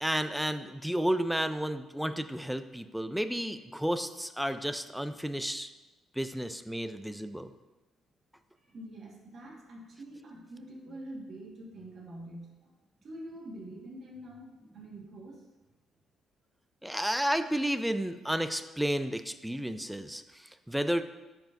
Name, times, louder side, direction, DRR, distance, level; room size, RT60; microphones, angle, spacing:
voice 1, 0.0-5.7 6.2-7.5 16.8-21.0, equal, ahead, 10 dB, 0.3 m, -32 dB
voice 2, 8.6-12.7 13.0-14.5 14.7-15.4, right 1 dB, 50° right, -2 dB, 1.5 m, -45 dB
10.0 x 4.7 x 2.6 m, 1.1 s
cardioid pair, 125°, 0 cm